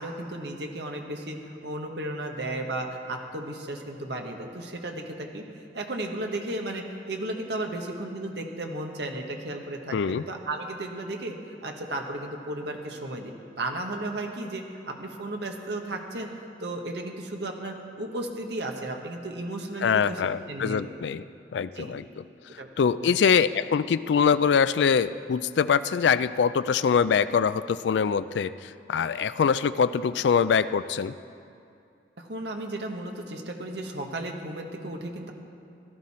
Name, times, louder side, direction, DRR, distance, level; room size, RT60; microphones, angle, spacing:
voice 1, 0.0-1.4 1.6-5.4 5.7-11.4 11.6-13.3 13.6-20.2 20.5-20.8 21.7-21.9 22.6-22.7 23.0-23.3 32.2-35.3, right 1 dB, 70° right, 2 dB, 1.4 m, -34 dB
voice 2, 9.9-10.2 19.8-21.2 21.5-22.1 22.8-31.1, left 6 dB, 80° left, 14 dB, 0.3 m, -23 dB
16.5 x 12.5 x 4.3 m, 2.5 s
head